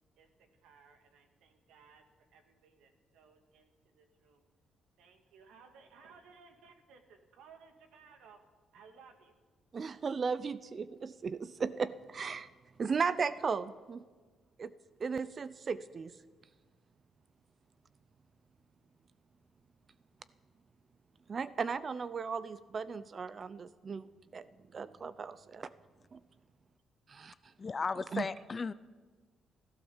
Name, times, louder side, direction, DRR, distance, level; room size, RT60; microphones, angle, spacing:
voice 1, 0.2-4.4 5.0-8.4 8.7-9.4, right 5 dB, 85° right, 6 dB, 2.0 m, -60 dB
voice 2, 9.7-12.5 12.8-14.0 14.6-14.7 15.0-16.2 21.3-24.5 24.7-25.7 26.1-26.2 27.1-27.5 28.1-28.3, right 5 dB, 40° right, 16 dB, 0.5 m, -36 dB
voice 3, 27.6-28.7, left 4 dB, 35° left, 17 dB, 0.4 m, -35 dB
15.5 x 12.5 x 7.2 m, 1.4 s
cardioid pair, 90°, 0 cm